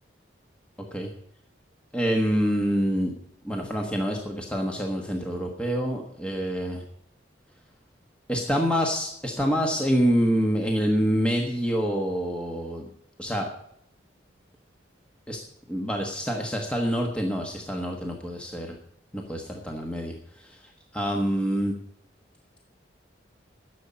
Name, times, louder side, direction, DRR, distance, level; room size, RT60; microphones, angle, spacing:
voice 1, 1.9-3.1 3.4-6.8 8.3-12.9 13.2-13.5 15.3-15.4 15.7-18.8 19.1-20.1 20.9-21.7, equal, 5° left, 1 dB, 1.3 m, -26 dB
11.0 x 7.1 x 8.6 m, 0.71 s
head